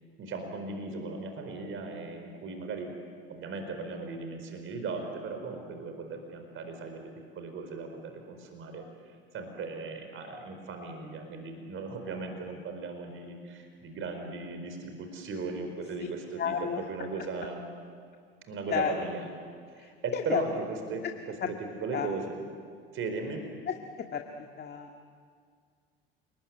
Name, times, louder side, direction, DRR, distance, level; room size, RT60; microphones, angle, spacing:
voice 1, 0.2-2.9 3.3-8.9 9.3-17.7 18.5-19.3 19.7-22.4 22.9-23.4, right 4 dB, 45° right, 5 dB, 4.6 m, -37 dB
voice 2, 16.4-16.8 18.7-19.1 19.8-20.4 21.4-21.5 21.9-22.1 23.7-23.8 24.1-24.9, left 7 dB, 35° left, 3 dB, 1.9 m, -31 dB
29.0 x 21.0 x 9.4 m, 2.1 s
hypercardioid pair, 80°, 29 cm